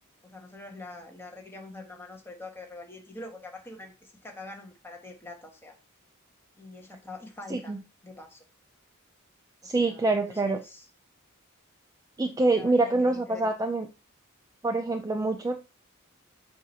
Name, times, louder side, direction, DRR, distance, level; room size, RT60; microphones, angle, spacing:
voice 1, 0.2-5.8 6.6-7.7 8.0-8.4 9.6-10.8 12.5-13.4, left 2 dB, 10° left, 1.2 m, -44 dB
voice 2, 7.5-7.8 9.6-10.6 12.2-13.9 14.6-15.6, right 2 dB, 15° right, 0.4 m, -25 dB
7.5 x 2.7 x 5.5 m
head